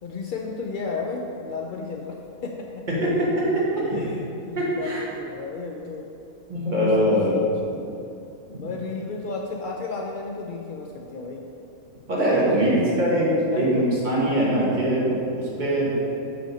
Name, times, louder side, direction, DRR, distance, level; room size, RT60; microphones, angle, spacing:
voice 1, 0.0-2.9 3.8-6.1 6.8-7.8 8.5-11.5 12.3-13.2 13.5-14.0 14.6-14.8, left 4 dB, 85° left, 0 dB, 0.4 m, -34 dB
voice 2, 3.5-4.0 4.5-5.0 6.5-7.4 12.1-15.2 15.6-15.9, right 1 dB, 35° right, -6 dB, 1.6 m, -22 dB
6.0 x 4.6 x 5.2 m, 2.7 s
omnidirectional pair, 1.4 m